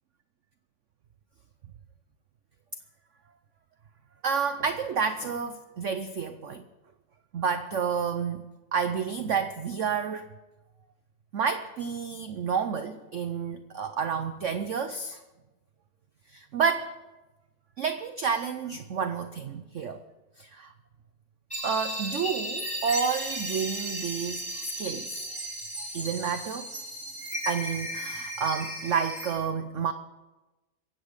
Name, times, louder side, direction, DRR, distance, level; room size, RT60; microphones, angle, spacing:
voice 1, 4.2-6.6 7.3-8.4 8.7-10.2 11.3-15.2 16.3-16.9 17.8-20.0 20.4-20.7 21.6-24.4 24.8-25.1 25.9-26.7 27.5-29.9, right 6 dB, 65° right, 10 dB, 0.7 m, -30 dB
sound 1, 21.5-29.3, right 1 dB, 5° left, 3.0 m, -35 dB
23.0 x 8.5 x 5.1 m, 1.1 s
omnidirectional pair, 2.0 m